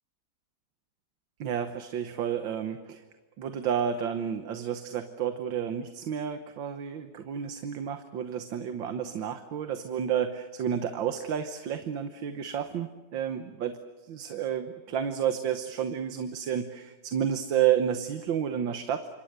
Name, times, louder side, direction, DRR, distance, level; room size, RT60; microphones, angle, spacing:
voice 1, 1.4-3.0 3.4-13.8 14.1-19.1, right 8 dB, 85° right, 8 dB, 1.8 m, -31 dB
29.0 x 26.0 x 6.7 m, 1.2 s
omnidirectional pair, 2.0 m